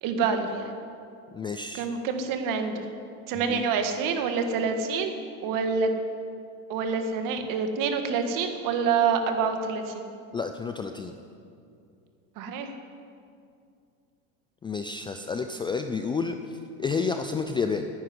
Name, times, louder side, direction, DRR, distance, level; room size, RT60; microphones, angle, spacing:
voice 1, 0.0-0.7 1.7-2.8 3.3-5.1 5.4-5.9 6.7-9.9 12.4-12.7, right 5 dB, 50° right, 6 dB, 1.8 m, -27 dB
voice 2, 1.3-1.9 3.3-3.7 10.3-11.1 14.6-17.9, left 5 dB, 15° left, 6 dB, 0.3 m, -30 dB
10.5 x 10.0 x 9.6 m, 2.4 s
supercardioid pair, 125°, 41 cm